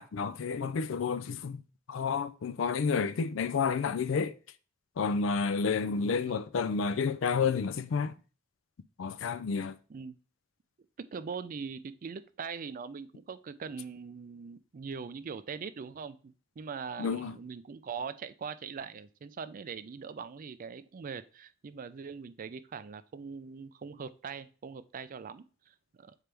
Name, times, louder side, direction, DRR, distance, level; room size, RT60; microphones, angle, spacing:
voice 1, 0.0-1.6 1.9-4.3 5.0-8.2 9.0-9.7 17.0-17.3, left 5 dB, 70° left, 0.4 m, -30 dB
voice 2, 11.0-26.1, right 5 dB, 45° right, 0.4 m, -42 dB
6.8 x 4.5 x 3.3 m
head